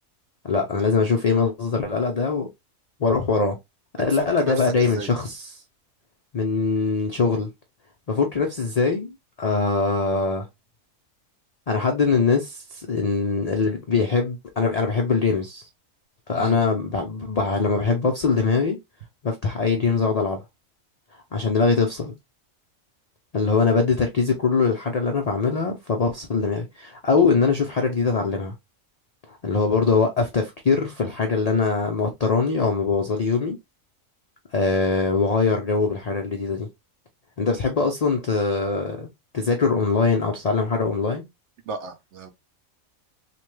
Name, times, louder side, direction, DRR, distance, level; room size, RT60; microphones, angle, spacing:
voice 1, 0.4-2.5 3.0-3.6 4.0-5.4 6.3-7.5 8.1-10.5 11.7-15.6 16.3-18.8 19.2-20.4 21.3-22.1 23.3-28.5 29.3-33.6 34.5-36.7 37.4-39.1 39.3-41.2, left 4 dB, 75° left, 0.3 m, -22 dB
voice 2, 4.1-5.1 16.3-16.5 41.6-42.3, right 4 dB, 60° right, 0.9 m, -34 dB
3.2 x 2.2 x 3.1 m
omnidirectional pair, 1.4 m